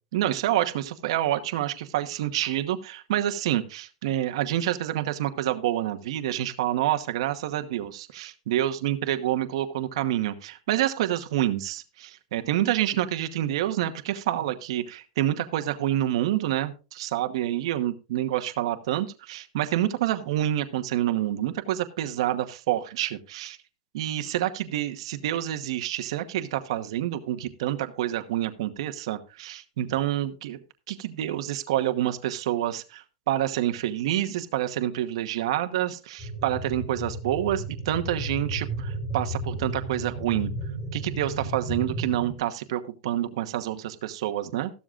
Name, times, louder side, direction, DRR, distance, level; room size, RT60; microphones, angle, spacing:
voice 1, 0.1-23.6 23.9-30.6 30.9-40.5 40.9-44.7, right 12 dB, 50° right, 7 dB, 1.0 m, -28 dB
sound 1, 36.2-42.3, right 1 dB, ahead, 1.3 m, -33 dB
14.0 x 12.5 x 2.5 m, 0.32 s
supercardioid pair, 180°, 4 cm